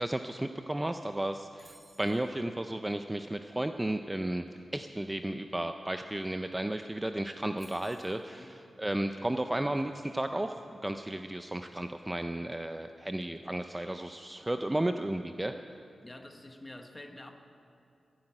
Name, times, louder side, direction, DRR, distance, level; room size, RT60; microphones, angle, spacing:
voice 1, 0.0-4.4 4.7-15.5, right 1 dB, 10° right, 7 dB, 0.4 m, -33 dB
sound 1, 1.6-2.2 6.2-6.3 6.5-6.8 7.6-8.2, right 2 dB, 35° right, 3.9 m, -58 dB
voice 2, 16.0-17.3, left 1 dB, 15° left, 5 dB, 1.2 m, -47 dB
15.5 x 8.9 x 9.7 m, 2.6 s
wide cardioid pair, 125°, 0 cm